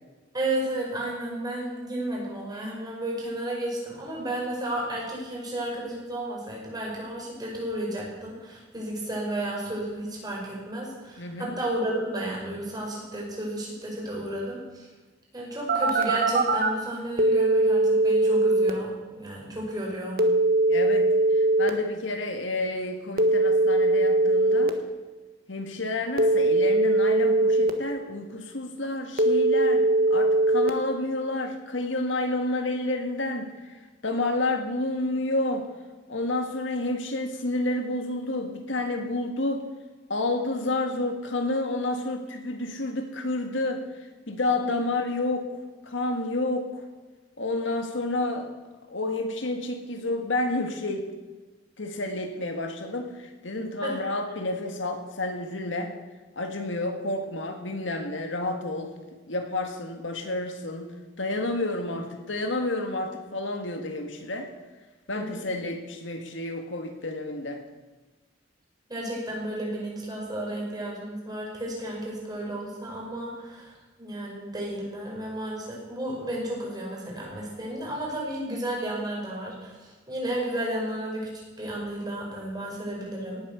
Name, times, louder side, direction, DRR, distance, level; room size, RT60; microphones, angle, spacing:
voice 1, 0.3-14.9 15.3-20.2 44.6-44.8 53.8-54.0 65.1-65.5 68.9-81.3 81.6-83.4, right 1 dB, 20° right, -3 dB, 5.4 m, -33 dB
voice 2, 11.2-11.5 20.7-24.8 25.5-29.9 30.1-33.7 34.0-35.7 36.1-39.6 40.1-43.8 44.3-45.6 45.9-46.8 47.4-48.5 48.9-51.1 51.8-55.9 56.4-58.9 59.3-64.5 65.1-67.6, left 2 dB, 75° left, 5 dB, 1.9 m, -30 dB
Telephone, 15.7-16.7 17.2-18.7 20.2-21.7 23.2-24.7 26.2-27.7 29.2-30.7, right 2 dB, 50° right, 1.4 m, -21 dB
18.0 x 8.9 x 7.0 m, 1.2 s
head